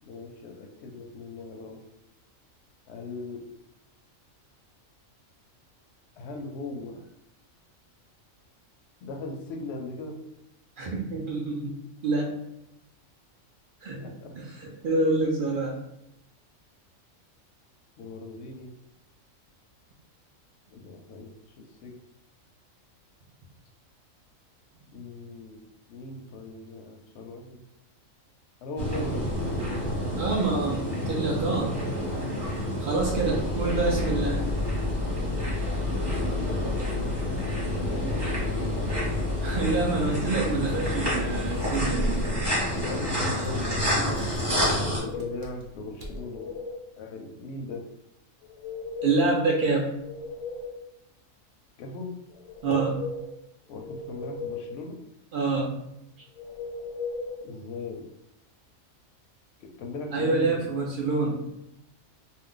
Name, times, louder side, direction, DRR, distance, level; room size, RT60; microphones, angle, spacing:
voice 1, 0.0-1.8 2.9-3.5 6.2-7.0 9.0-10.2 13.9-14.4 18.0-18.7 20.7-22.0 24.9-25.6 25.9-27.6 28.6-29.6 32.8-33.6 36.6-38.4 41.9-44.2 45.0-46.6 47.0-47.8 51.8-52.1 53.7-55.0 57.4-58.1 59.6-60.7, left 2 dB, 65° left, 2 dB, 0.7 m, -39 dB
voice 2, 10.8-11.7 12.0-12.3 13.8-14.0 14.3-15.8 30.2-30.8 31.1-31.7 32.8-34.4 39.4-42.3 49.0-49.9 52.6-53.0 55.3-55.7 60.1-61.4, right 3 dB, 65° right, -2 dB, 0.5 m, -26 dB
sound 1, 28.8-45.0, equal, 20° right, 0.8 m, -29 dB
Engine starting, 32.9-46.2, left 3 dB, 85° right, 1.1 m, -33 dB
sound 2, 44.6-45.5 46.0-46.8 48.4-49.4 49.8-50.9 52.3-53.3 53.8-54.8 56.4-57.4, left 3 dB, 85° left, 1.0 m, -37 dB
2.5 x 2.1 x 3.7 m, 0.84 s
omnidirectional pair, 1.4 m